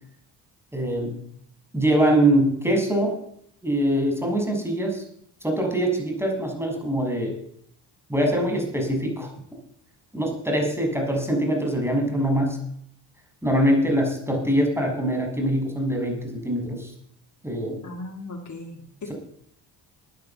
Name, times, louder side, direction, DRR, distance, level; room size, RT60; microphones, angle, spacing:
voice 1, 0.7-1.1 1.7-3.1 3.6-5.0 5.4-7.3 8.1-9.3 10.1-12.6 13.4-16.9 17.4-17.8, right 1 dB, 5° right, 2 dB, 6.4 m, -23 dB
voice 2, 17.8-19.1, left 2 dB, 35° left, 4 dB, 2.0 m, -37 dB
12.0 x 9.4 x 8.3 m, 0.68 s
supercardioid pair, 65°, 47 cm